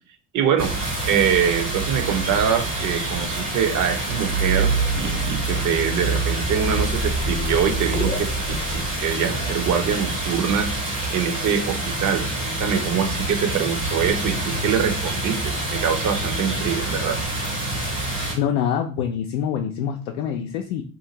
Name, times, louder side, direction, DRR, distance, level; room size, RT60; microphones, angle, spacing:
voice 1, 0.3-0.7 1.1-10.8 11.1-17.2, right 7 dB, 40° right, 7 dB, 0.7 m, -24 dB
sound 1, 0.6-18.3, right 2 dB, 90° right, 1.4 m, -26 dB
sound 2, 4.6-9.7, left 5 dB, 20° left, 0.6 m, -33 dB
voice 2, 18.3-20.8, left 8 dB, 70° left, 3 dB, 0.5 m, -25 dB
2.6 x 2.5 x 2.8 m, 0.38 s
figure-of-eight pair, 50°, 45 cm